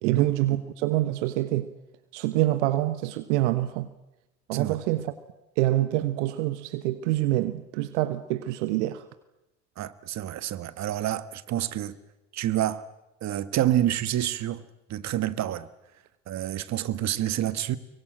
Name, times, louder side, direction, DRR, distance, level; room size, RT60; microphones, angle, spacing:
voice 1, 0.0-1.7 2.1-3.9 4.5-5.1 5.6-9.0, right 16 dB, 70° right, 1.2 m, -26 dB
voice 2, 9.8-11.9 12.3-12.8 13.2-14.6 14.9-15.7 16.3-17.8, right 12 dB, 50° right, 1.6 m, -28 dB
25.0 x 23.5 x 7.8 m
figure-of-eight pair, 60°, 36 cm